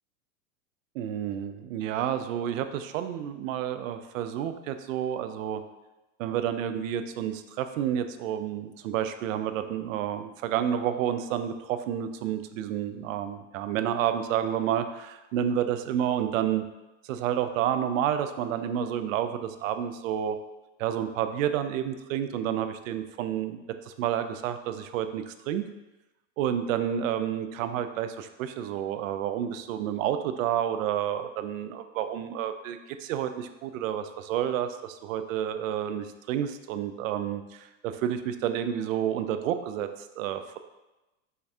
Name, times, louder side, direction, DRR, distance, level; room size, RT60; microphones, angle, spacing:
voice 1, 0.9-5.6 6.2-16.6 17.0-20.4 20.8-23.6 23.9-25.6 26.4-40.6, right 10 dB, 75° right, 9 dB, 0.5 m, -30 dB
5.7 x 2.6 x 3.5 m, 1.0 s
supercardioid pair, 140°, 40 cm